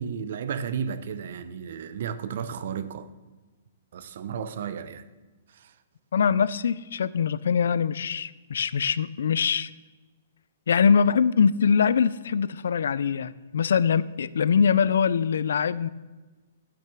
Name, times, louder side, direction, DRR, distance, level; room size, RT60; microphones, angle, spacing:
voice 1, 0.0-3.1 3.9-5.0 5.5-5.7, right 7 dB, 50° right, 0.6 m, -33 dB
voice 2, 6.1-9.7 10.7-15.9, left 6 dB, 70° left, 0.4 m, -23 dB
8.9 x 5.9 x 6.0 m
hypercardioid pair, 175°, 0 cm